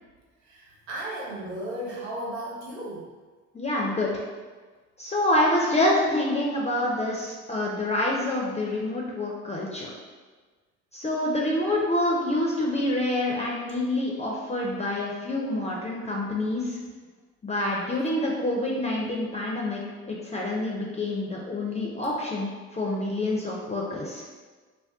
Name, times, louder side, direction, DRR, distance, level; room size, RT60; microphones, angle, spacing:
voice 1, 0.4-3.1, right 1 dB, 85° right, -5 dB, 0.8 m, -35 dB
voice 2, 3.5-4.2 5.0-9.9 10.9-16.8 17.4-19.8 20.1-24.2, left 1 dB, 20° left, -3 dB, 0.5 m, -27 dB
2.4 x 2.2 x 3.5 m, 1.4 s
hypercardioid pair, 55°, 34 cm